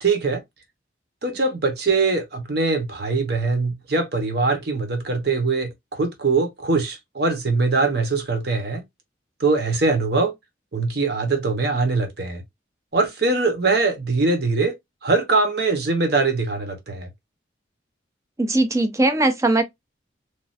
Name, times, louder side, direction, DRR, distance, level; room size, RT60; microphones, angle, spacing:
voice 1, 0.0-0.4 1.2-8.8 9.4-10.3 10.7-12.4 12.9-14.7 15.0-17.1, right 3 dB, 55° right, 0.9 m, -22 dB
voice 2, 18.4-19.6, right 2 dB, 15° right, 0.5 m, -19 dB
3.1 x 2.4 x 2.5 m
head